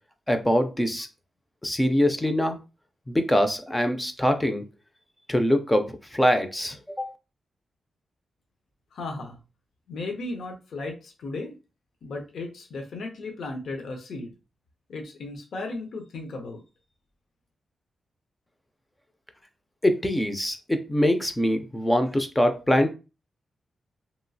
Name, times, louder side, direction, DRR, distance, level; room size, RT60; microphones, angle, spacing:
voice 1, 0.3-1.1 1.6-2.6 3.1-4.6 5.3-5.9 6.1-7.1 19.8-22.9, equal, 10° left, 7 dB, 0.3 m, -23 dB
voice 2, 8.9-9.4 9.9-11.6 12.0-14.3 14.9-16.6, left 2 dB, 65° left, 3 dB, 0.6 m, -35 dB
2.9 x 2.3 x 2.6 m, 0.30 s
wide cardioid pair, 180°, 0 cm